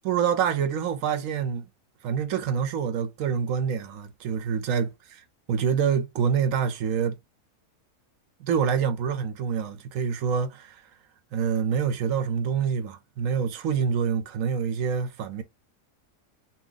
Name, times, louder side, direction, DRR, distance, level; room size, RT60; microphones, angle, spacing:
voice 1, 0.0-1.7 2.0-4.9 5.5-7.1 8.4-10.8 11.3-15.4, right 7 dB, 70° right, 0.9 m, -26 dB
2.8 x 2.1 x 3.7 m
omnidirectional pair, 1.7 m